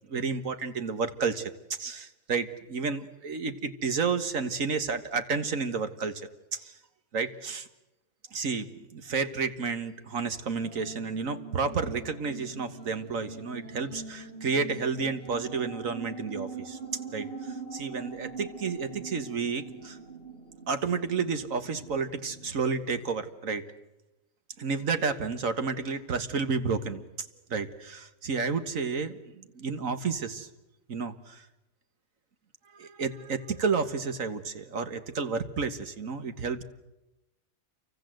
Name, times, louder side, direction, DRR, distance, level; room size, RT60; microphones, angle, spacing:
voice 1, 0.1-1.5 1.8-6.8 7.1-7.7 8.3-16.8 17.1-20.0 20.7-23.7 24.6-30.5 30.9-31.5 32.7-36.6, right 5 dB, 70° right, 10 dB, 1.9 m, -31 dB
sound 1, 10.6-23.1, right 4 dB, 40° right, 3.6 m, -43 dB
28.5 x 24.5 x 7.9 m, 0.97 s
omnidirectional pair, 1.4 m